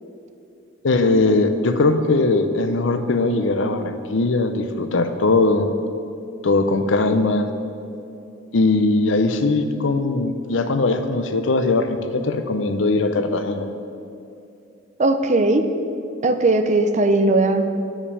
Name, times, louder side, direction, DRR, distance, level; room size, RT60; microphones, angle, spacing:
voice 1, 0.8-5.7 6.4-7.5 8.5-13.7, left 3 dB, 75° left, 9 dB, 0.6 m, -20 dB
voice 2, 15.0-15.6 16.2-17.8, right 2 dB, 40° right, 8 dB, 0.5 m, -18 dB
9.7 x 5.2 x 6.9 m, 2.6 s
head